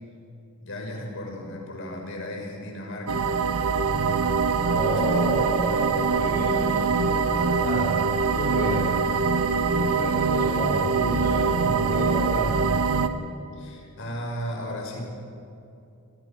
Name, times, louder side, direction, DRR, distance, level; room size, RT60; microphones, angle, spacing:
voice 1, 0.6-3.3 3.8-5.4 13.6-15.0, equal, 60° left, 1 dB, 6.1 m, -36 dB
sound 1, 3.1-13.1, right 4 dB, 70° right, 1.4 m, -23 dB
voice 2, 4.7-8.0 8.3-8.9 9.8-12.6, equal, 45° left, -4 dB, 3.4 m, -31 dB
27.5 x 25.5 x 6.1 m, 2.7 s
head